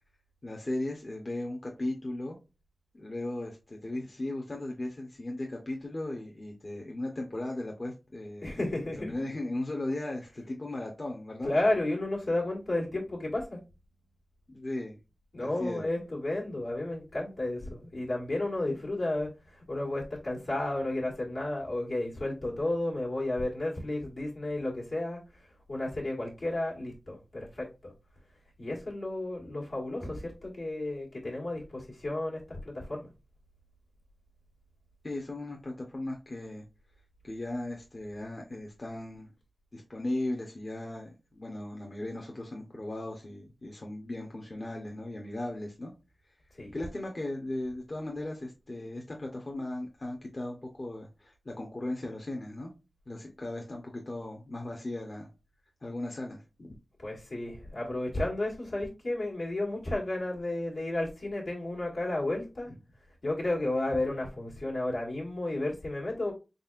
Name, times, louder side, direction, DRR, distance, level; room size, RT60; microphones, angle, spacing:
voice 1, 0.4-2.4 2.9-8.5 9.0-11.6 14.5-15.0 15.4-15.8 35.0-36.6 37.2-39.3 39.7-45.9 46.7-52.7 53.1-55.3 55.8-56.8, left 1 dB, 55° left, 0.8 m, -37 dB
voice 2, 8.4-9.1 11.4-13.6 15.3-27.9 28.6-33.1 46.5-46.8 57.0-62.7 63.2-66.3, left 2 dB, 85° left, 1.7 m, -32 dB
4.1 x 3.5 x 2.4 m
cardioid pair, 40°, 0 cm